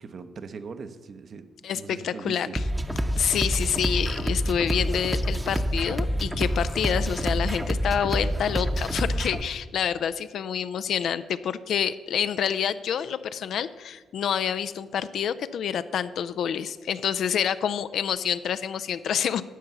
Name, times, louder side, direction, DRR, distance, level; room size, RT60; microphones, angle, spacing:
voice 1, 0.0-1.4 1.7-2.5, right 5 dB, 50° right, 9 dB, 0.8 m, -40 dB
voice 2, 1.6-2.5 3.2-19.4, left 8 dB, 60° left, 13 dB, 0.4 m, -27 dB
sound 1, 2.6-9.4, equal, 10° right, 0.8 m, -27 dB
11.0 x 5.5 x 7.0 m, 1.3 s
figure-of-eight pair, 40°, 0 cm